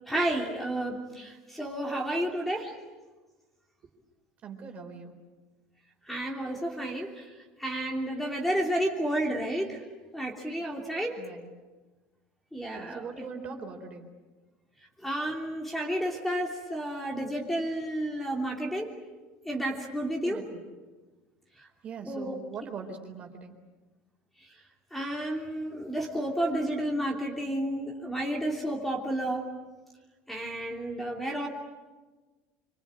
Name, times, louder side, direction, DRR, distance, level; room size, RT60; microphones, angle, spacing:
voice 1, 0.1-2.8 6.1-7.2 7.6-9.8 10.1-11.2 12.5-13.2 15.0-18.9 19.4-20.4 22.0-22.3 24.9-29.5 30.3-31.5, right 1 dB, 5° left, 0 dB, 3.1 m, -31 dB
voice 2, 4.4-5.1 11.2-11.5 12.6-14.1 20.2-20.6 21.8-23.6, right 5 dB, 35° right, 4 dB, 4.1 m, -41 dB
27.0 x 24.0 x 8.9 m, 1.3 s
cardioid pair, 150°, 4 cm